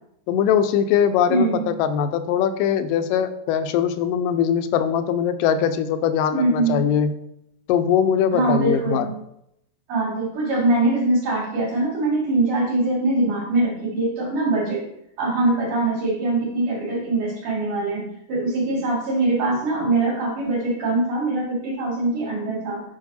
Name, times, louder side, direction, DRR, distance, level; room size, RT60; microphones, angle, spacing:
voice 1, 0.3-7.1 7.7-9.1, left 8 dB, 85° left, 10 dB, 2.2 m, -21 dB
voice 2, 1.3-1.6 6.3-6.8 8.3-9.1 9.9-14.9 15.2-22.8, right 2 dB, 65° right, -6 dB, 4.0 m, -22 dB
8.9 x 5.3 x 4.2 m, 0.77 s
omnidirectional pair, 3.9 m